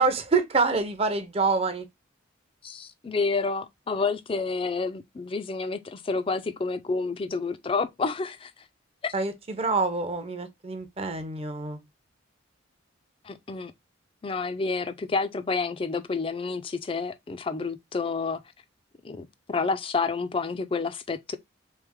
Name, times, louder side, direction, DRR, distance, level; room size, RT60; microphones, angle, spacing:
voice 1, 0.0-1.9 9.1-11.8, right 4 dB, 30° right, 0.5 m, -26 dB
voice 2, 2.6-8.5 9.0-9.1 13.2-13.7 14.2-18.4 19.0-21.4, left 4 dB, 25° left, 0.3 m, -29 dB
3.3 x 3.2 x 3.5 m
head